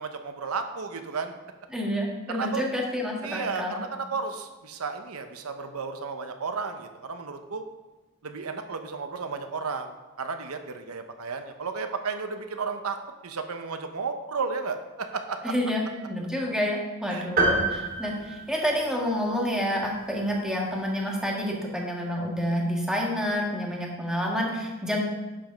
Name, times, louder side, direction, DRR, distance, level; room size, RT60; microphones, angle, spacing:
voice 1, 0.0-1.4 2.3-2.7 3.2-7.6 8.2-13.0 13.2-15.5 17.1-17.3, right 4 dB, 90° right, 7 dB, 0.8 m, -33 dB
voice 2, 1.7-3.8 15.4-15.8 16.1-25.0, equal, 5° right, -2 dB, 1.5 m, -28 dB
sound 1, 17.4-19.2, right 2 dB, 40° right, 2.3 m, -27 dB
11.5 x 5.2 x 5.2 m, 1.1 s
head